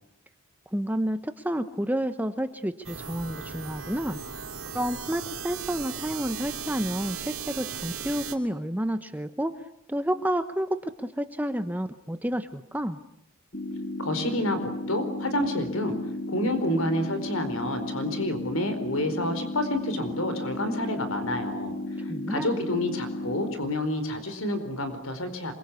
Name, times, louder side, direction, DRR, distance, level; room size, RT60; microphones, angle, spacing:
voice 1, 0.7-4.2 4.7-9.5 9.9-13.0 22.1-22.6, equal, 10° right, 10 dB, 1.0 m, -30 dB
sound 1, 2.8-8.3, right 7 dB, 75° right, 3.5 m, -37 dB
sound 2, 13.5-23.5, left 2 dB, 40° left, 2.6 m, -34 dB
voice 2, 14.0-16.0 16.3-21.7 22.3-25.5, left 1 dB, 75° left, 9 dB, 4.6 m, -29 dB
27.5 x 24.0 x 8.4 m, 0.75 s
head